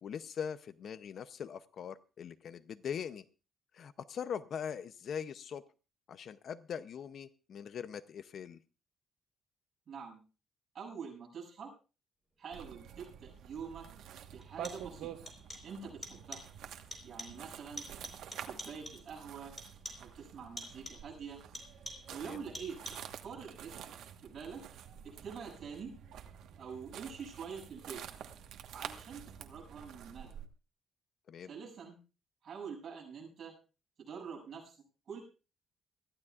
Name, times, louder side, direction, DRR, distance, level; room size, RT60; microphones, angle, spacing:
voice 1, 0.0-3.2 3.7-5.6 6.1-8.6 22.2-22.4 31.3-31.5, left 7 dB, 50° left, 14 dB, 0.6 m, -41 dB
voice 2, 9.9-10.2 10.7-11.7 12.4-13.9 14.3-15.1 15.6-16.4 17.0-17.9 18.4-19.6 20.0-21.4 22.1-24.6 25.0-25.9 26.6-28.0 28.7-30.4 31.4-32.0 32.4-33.6 34.0-34.7 35.1-35.2, right 6 dB, 45° right, -1 dB, 7.9 m, -46 dB
sound 1, 12.5-30.5, right 9 dB, 90° right, 1.3 m, -49 dB
sound 2, 13.4-13.5 14.4-15.0 15.3-16.6 16.9-17.5 17.8-19.1 19.6-20.2 20.6-21.1 21.5-22.2 22.5-23.2, left 1 dB, 15° left, 4.1 m, -48 dB
23.5 x 14.5 x 2.4 m, 0.33 s
cardioid pair, 155°, 0 cm